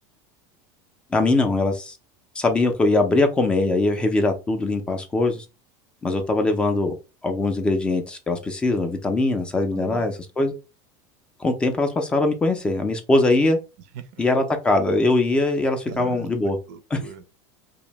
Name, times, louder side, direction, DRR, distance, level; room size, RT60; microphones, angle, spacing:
voice 1, 1.1-2.0 2.4-5.4 6.0-6.9 7.2-10.5 11.4-13.6 14.2-16.6 16.9-17.0, left 2 dB, 10° left, 0.3 m, -21 dB
voice 2, 9.7-10.0 13.9-14.2 15.9-17.3, right 8 dB, 70° right, 0.4 m, -39 dB
2.6 x 2.1 x 2.9 m
supercardioid pair, 170°, 10 cm